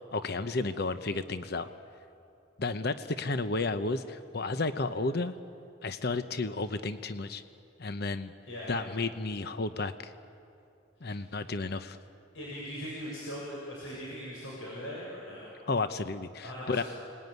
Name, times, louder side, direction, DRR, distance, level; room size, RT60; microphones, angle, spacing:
voice 1, 0.1-1.7 2.6-5.4 5.8-7.4 7.8-8.3 8.7-10.1 11.0-12.0 15.7-16.8, left 3 dB, 55° left, 10 dB, 0.9 m, -32 dB
voice 2, 8.5-8.8 11.0-11.3 12.3-15.5 16.4-16.8, equal, 85° left, -5 dB, 6.9 m, -40 dB
29.5 x 20.5 x 9.5 m, 2.6 s
head